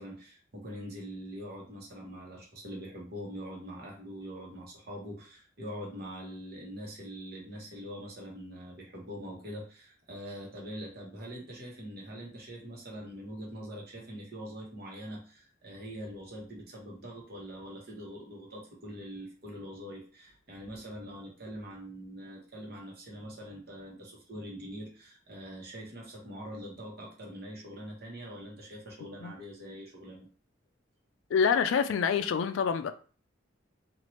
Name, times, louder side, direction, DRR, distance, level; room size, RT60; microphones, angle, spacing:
voice 1, 0.0-30.3, equal, 50° right, 1.0 m, -43 dB
voice 2, 31.3-32.9, left 6 dB, 70° left, 0.3 m, -26 dB
2.9 x 2.5 x 3.1 m
head